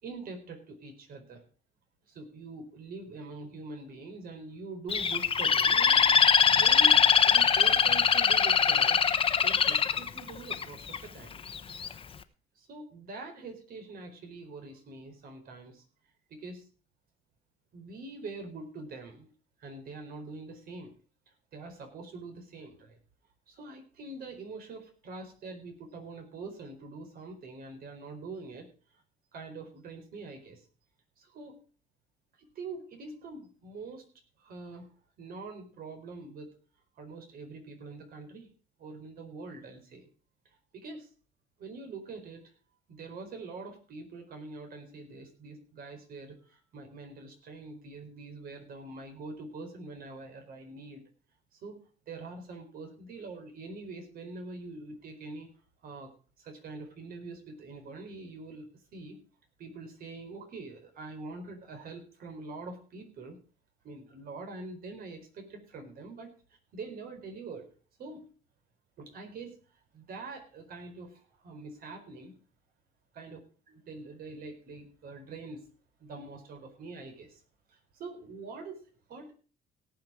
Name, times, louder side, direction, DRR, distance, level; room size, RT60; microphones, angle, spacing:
voice 1, 0.0-1.4 2.1-9.1 9.4-11.4 12.6-15.8 16.3-16.7 17.7-19.3 19.6-20.9 21.5-23.0 23.5-28.7 29.3-30.6 31.2-31.6 32.4-34.1 34.4-34.9 35.2-36.5 37.0-38.5 38.8-40.1 40.7-41.1 41.6-42.4 42.9-51.0 51.5-51.8 52.1-55.5 55.8-56.1 56.4-59.2 59.6-63.4 63.8-66.3 66.7-67.7 68.0-68.3 69.0-72.3 73.1-75.7 76.0-77.4 77.7-79.3, right 3 dB, 60° right, 5 dB, 4.6 m, -44 dB
Bird, 4.9-11.0 11.5-11.9, left 6 dB, 30° left, 1.1 m, -22 dB
18.0 x 6.9 x 4.9 m, 0.39 s
cardioid pair, 110°, 17 cm